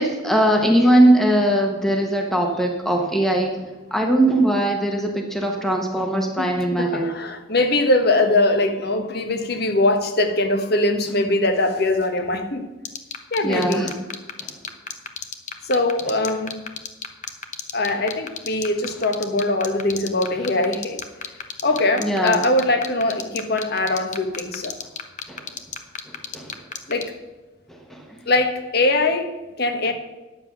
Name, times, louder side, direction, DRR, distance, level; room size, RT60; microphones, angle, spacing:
voice 1, 0.0-3.6 3.9-7.1 13.4-14.0 14.4-14.5 22.0-22.5 25.3-25.5 26.3-26.6 27.7-28.1, right 1 dB, ahead, 2 dB, 1.1 m, -20 dB
voice 2, 6.4-12.7 13.3-13.9 15.6-16.6 17.7-21.0 21.6-24.7 26.9-27.2 28.3-29.9, left 2 dB, 55° left, 7 dB, 1.2 m, -22 dB
sound 1, 12.8-27.0, left 7 dB, 40° left, 0.9 m, -30 dB
10.0 x 7.6 x 6.1 m, 1.1 s
head